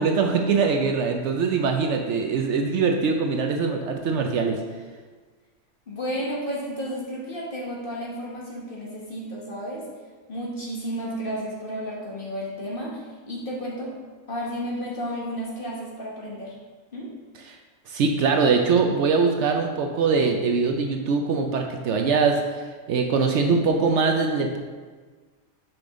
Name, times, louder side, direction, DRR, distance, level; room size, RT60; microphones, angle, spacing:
voice 1, 0.0-4.6 17.9-22.4 22.9-24.6, right 5 dB, 70° right, 4 dB, 0.8 m, -22 dB
voice 2, 5.9-9.9 10.3-13.0 13.3-13.9 14.3-16.6 16.9-17.1, equal, 45° left, -4 dB, 1.4 m, -32 dB
6.0 x 5.0 x 3.7 m, 1.4 s
omnidirectional pair, 1.4 m